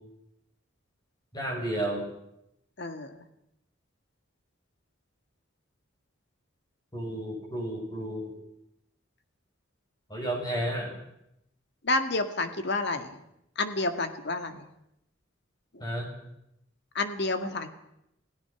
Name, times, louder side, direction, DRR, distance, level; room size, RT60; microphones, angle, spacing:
voice 1, 1.3-2.0 6.9-8.3 10.1-10.9 15.8-16.1, right 1 dB, 20° left, 0 dB, 6.9 m, -32 dB
voice 2, 2.8-3.2 11.8-13.2 13.6-14.6 15.7-15.8 17.0-17.7, left 2 dB, 55° left, 8 dB, 1.8 m, -30 dB
28.0 x 16.5 x 6.0 m, 0.82 s
head